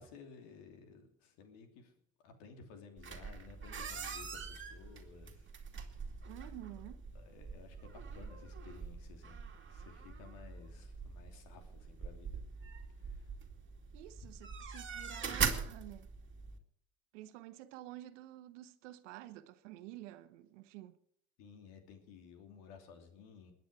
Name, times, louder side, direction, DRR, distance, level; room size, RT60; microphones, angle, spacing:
voice 1, 0.0-1.9 2.2-6.0 7.1-9.4 9.7-12.4 13.0-13.3 21.4-23.5, left 5 dB, 80° left, 3.0 m, -56 dB
sound 1, 3.0-16.6, right 5 dB, 35° right, 2.5 m, -42 dB
voice 2, 6.3-7.0 13.9-16.1 17.1-21.0, right 15 dB, 90° right, 1.1 m, -50 dB
20.5 x 9.2 x 4.9 m
supercardioid pair, 75°, 35 cm